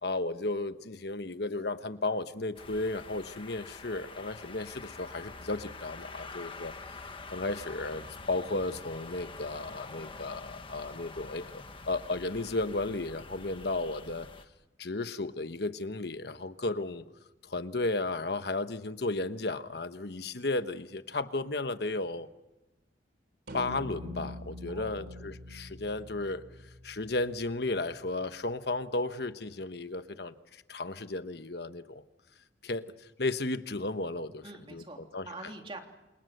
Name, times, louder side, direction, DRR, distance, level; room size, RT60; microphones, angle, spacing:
voice 1, 0.0-6.7 7.3-14.3 14.8-17.0 17.4-22.3 23.5-26.4 26.8-32.0 32.6-34.4 34.7-34.8 35.1-35.3, left 2 dB, 60° left, 10 dB, 1.2 m, -34 dB
sound 1, 2.5-14.4, left 3 dB, 30° left, 1.5 m, -46 dB
sound 2, 23.5-28.0, left 1 dB, 55° right, 3.4 m, -44 dB
voice 2, 24.7-25.0 34.4-35.8, right 2 dB, 30° right, 3 dB, 3.2 m, -45 dB
29.5 x 27.0 x 6.7 m, 1.0 s
head